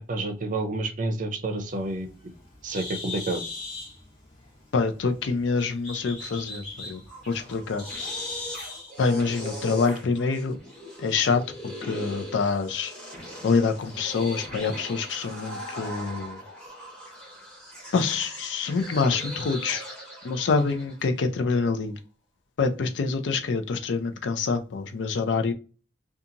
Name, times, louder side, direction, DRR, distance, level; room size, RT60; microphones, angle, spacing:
voice 1, 0.1-2.1 2.6-3.4, right 2 dB, 45° right, 0.5 m, -29 dB
Bird, 1.6-8.9, left 3 dB, 35° left, 1.2 m, -39 dB
voice 2, 4.7-7.8 9.0-10.6 11.0-12.9 13.4-16.4 17.9-19.9 20.2-22.0 22.6-25.5, left 4 dB, 90° left, 0.4 m, -26 dB
sound 1, 6.9-21.1, equal, 5° left, 1.1 m, -40 dB
2.8 x 2.3 x 2.4 m
head